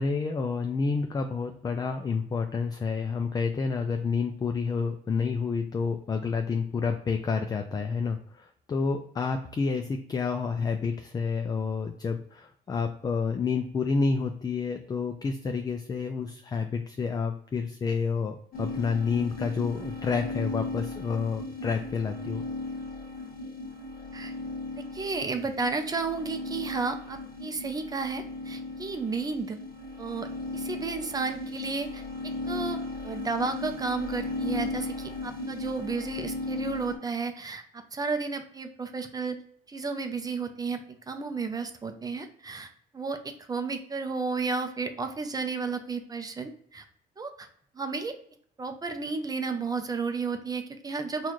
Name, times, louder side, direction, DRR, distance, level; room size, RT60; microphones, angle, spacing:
voice 1, 0.0-22.4, left 5 dB, 25° left, 6 dB, 0.4 m, -29 dB
sound 1, 18.5-37.0, left 2 dB, 60° left, 1.3 m, -36 dB
voice 2, 24.7-29.6 30.0-39.4 39.7-46.8 47.2-47.5 47.7-48.1 48.6-51.3, right 4 dB, 20° right, 6 dB, 0.5 m, -33 dB
4.0 x 2.3 x 3.0 m, 0.62 s
cardioid pair, 110°, 17 cm